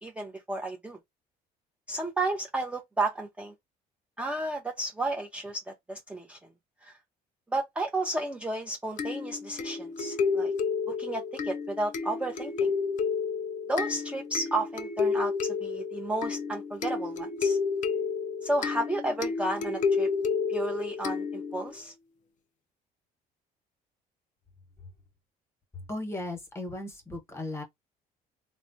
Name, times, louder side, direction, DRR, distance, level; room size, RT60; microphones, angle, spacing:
voice 1, 0.0-1.0 1.9-3.5 4.2-6.4 6.8-7.0 7.5-10.5 10.9-12.7 13.7-17.6 18.4-20.1 20.5-21.9, right 2 dB, 5° right, 0.5 m, -32 dB
sound 1, 9.0-21.7, left 5 dB, 50° left, 0.4 m, -31 dB
voice 2, 25.9-27.6, left 2 dB, 15° left, 1.1 m, -36 dB
3.3 x 2.1 x 2.6 m
cardioid pair, 110°, 17 cm